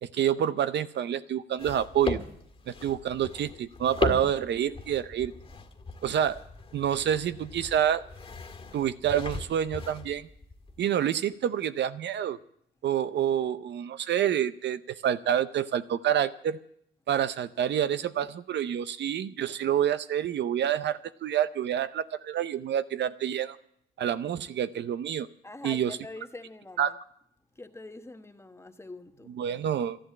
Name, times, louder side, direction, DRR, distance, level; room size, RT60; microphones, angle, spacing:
voice 1, 0.0-2.2 2.7-5.3 6.0-6.4 6.7-8.0 8.7-10.3 10.8-12.4 12.8-16.6 17.1-23.6 24.0-25.3 25.6-26.0 26.8-26.9 29.4-30.0, right 9 dB, 60° right, 0.6 m, -28 dB
sound 1, 1.6-10.9, left 3 dB, 30° left, 1.9 m, -37 dB
voice 2, 25.4-27.0 27.5-29.4, left 2 dB, 15° left, 1.2 m, -44 dB
12.0 x 11.5 x 8.6 m
cardioid pair, 90°, 20 cm